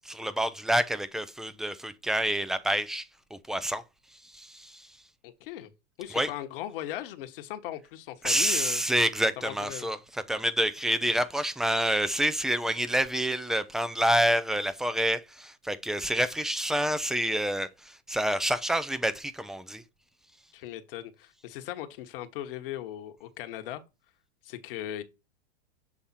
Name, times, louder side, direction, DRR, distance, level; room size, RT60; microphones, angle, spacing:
voice 1, 0.0-3.0 3.3-3.8 4.3-4.9 6.1-6.3 8.2-19.8, right 1 dB, ahead, 0.3 m, -28 dB
voice 2, 5.2-5.7 6.0-8.8 9.4-9.9 20.5-23.8 24.4-25.0, left 12 dB, 60° left, 1.2 m, -38 dB
7.3 x 3.5 x 4.1 m
hypercardioid pair, 125°, 31 cm